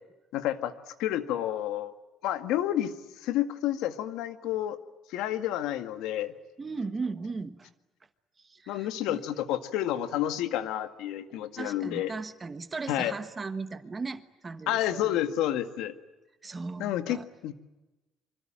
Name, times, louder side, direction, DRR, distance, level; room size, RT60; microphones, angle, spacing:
voice 1, 0.3-0.7 1.0-1.9 2.2-2.9 3.2-4.8 5.1-6.3 8.7-12.1 12.9-13.1 14.7-15.9 16.8-17.5, left 12 dB, 90° left, 9 dB, 1.8 m, -30 dB
voice 2, 6.6-7.7 8.5-9.2 11.3-15.1 16.4-17.3, right 4 dB, 20° right, 10 dB, 1.3 m, -37 dB
26.0 x 25.5 x 8.9 m, 1.1 s
cardioid pair, 175°, 0 cm